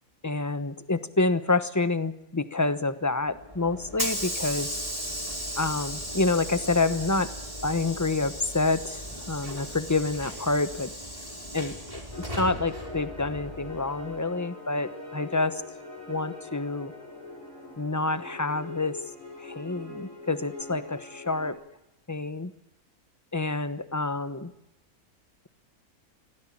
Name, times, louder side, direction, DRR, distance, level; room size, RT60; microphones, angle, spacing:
voice 1, 0.2-4.7 5.6-7.3 7.6-10.9 11.5-12.0 12.4-15.6 16.1-16.9 17.8-19.0 19.4-21.6 22.1-22.5 23.3-24.5, left 3 dB, 15° left, 13 dB, 0.9 m, -28 dB
Hiss / Sliding door, 3.3-14.1, equal, 20° right, 4.2 m, -36 dB
sound 1, 12.1-21.5, left 2 dB, 60° left, 5.7 m, -42 dB
24.5 x 17.0 x 8.7 m, 0.90 s
omnidirectional pair, 1.6 m